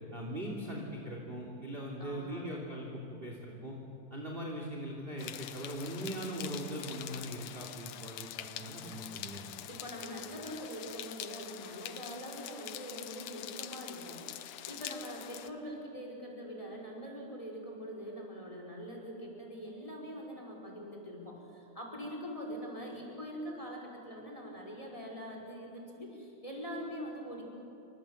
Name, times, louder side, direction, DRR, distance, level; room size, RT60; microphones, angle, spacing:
voice 1, 0.1-3.8 4.1-9.4, equal, 20° right, -1 dB, 2.8 m, -40 dB
voice 2, 2.0-2.7 9.7-14.3 14.7-27.4, equal, 10° left, 0 dB, 4.9 m, -43 dB
sound 1, 5.2-15.5, left 12 dB, 80° left, 2.4 m, -45 dB
28.0 x 25.0 x 7.8 m, 2.9 s
omnidirectional pair, 3.5 m